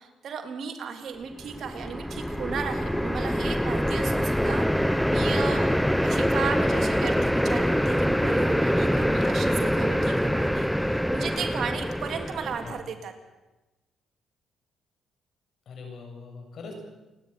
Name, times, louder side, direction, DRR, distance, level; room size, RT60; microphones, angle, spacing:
voice 1, 0.0-5.7 6.0-13.1, right 6 dB, 60° right, 5 dB, 3.2 m, -35 dB
sound 1, 1.4-12.8, equal, ahead, 0.7 m, -25 dB
voice 2, 15.7-16.7, left 4 dB, 60° left, 3 dB, 7.6 m, -42 dB
28.5 x 11.0 x 9.9 m, 1.1 s
cardioid pair, 90°, 0 cm